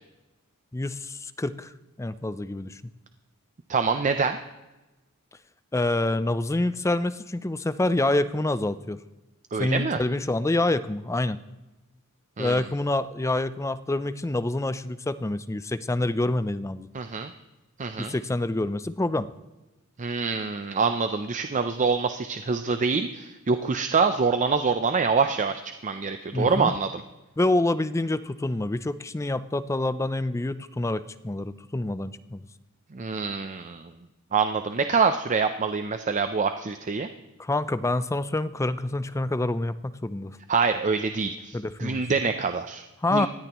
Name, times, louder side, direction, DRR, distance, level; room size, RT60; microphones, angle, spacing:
voice 1, 0.7-1.7 2.0-2.8 5.7-9.0 9.6-11.4 12.4-16.9 18.0-19.3 26.3-26.7 27.4-32.5 37.4-40.3 41.5-42.0 43.0-43.3, left 2 dB, 15° left, 13 dB, 0.4 m, -27 dB
voice 2, 3.7-4.4 9.5-10.0 12.4-12.6 16.9-17.3 17.8-18.1 20.0-26.9 32.9-33.8 34.3-37.1 40.5-42.8 43.1-43.3, right 5 dB, 35° right, 8 dB, 0.5 m, -25 dB
19.5 x 13.5 x 3.0 m, 1.1 s
head